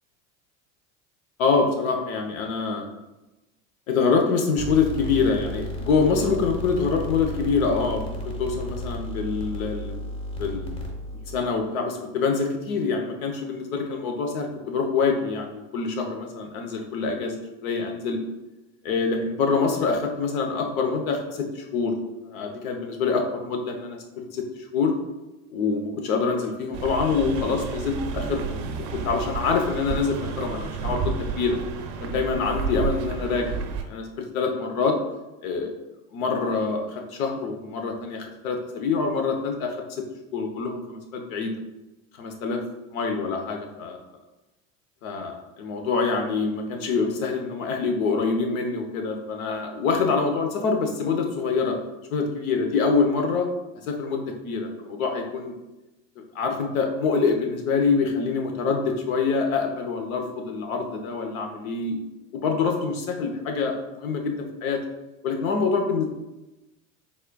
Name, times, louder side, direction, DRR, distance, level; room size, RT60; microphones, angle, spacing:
voice 1, 1.4-2.8 3.9-10.0 10.4-10.7 11.3-18.2 18.8-21.9 22.2-24.9 25.5-28.6 29.0-31.6 32.0-33.5 33.9-35.0 35.4-35.7 36.1-39.8 40.3-41.5 42.2-42.6 42.9-44.0 45.0-51.8 52.1-53.5 53.9-55.5 56.3-62.0 62.3-64.8 65.2-66.0, left 4 dB, 85° left, 3 dB, 0.8 m, -25 dB
sound 1, 4.6-11.4, equal, 15° left, 0.7 m, -33 dB
sound 2, 26.7-33.8, right 5 dB, 80° right, 0.6 m, -31 dB
4.2 x 3.5 x 2.2 m, 1.0 s
supercardioid pair, 95°, 40 cm